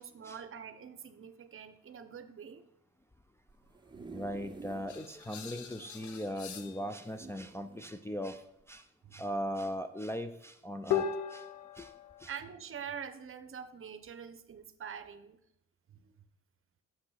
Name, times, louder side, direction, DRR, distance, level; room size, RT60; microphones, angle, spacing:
voice 1, 0.0-2.6 4.0-4.2 9.0-9.2 12.3-15.4 16.0-16.1, right 7 dB, 45° right, 0.8 m, -45 dB
sound 1, 3.5-5.0 5.5-5.6 5.8-5.9 7.0-7.9 8.6-8.8, right 4 dB, 15° right, 0.9 m, -49 dB
voice 2, 4.1-8.4 8.7-8.8 9.1-11.0 11.3-11.4 11.8-11.9 12.2-12.3, equal, 10° left, 0.4 m, -38 dB
sound 2, 4.9-6.9 10.9-12.2, left 8 dB, 70° left, 0.8 m, -37 dB
6.6 x 5.9 x 5.7 m
cardioid pair, 90°, 30 cm